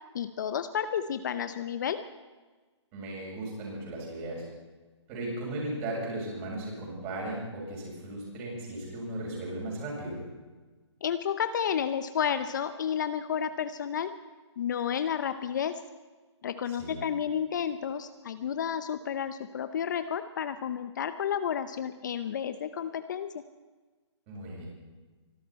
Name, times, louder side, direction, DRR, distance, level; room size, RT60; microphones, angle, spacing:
voice 1, 0.1-2.0 11.0-14.1 14.6-15.8 16.4-23.4, left 8 dB, 40° left, 10 dB, 0.7 m, -31 dB
voice 2, 2.9-4.4 5.1-10.2 16.7-17.0 24.3-24.7, right 1 dB, 25° right, -2 dB, 7.2 m, -36 dB
24.5 x 13.0 x 4.3 m, 1.3 s
hypercardioid pair, 160°, 15 cm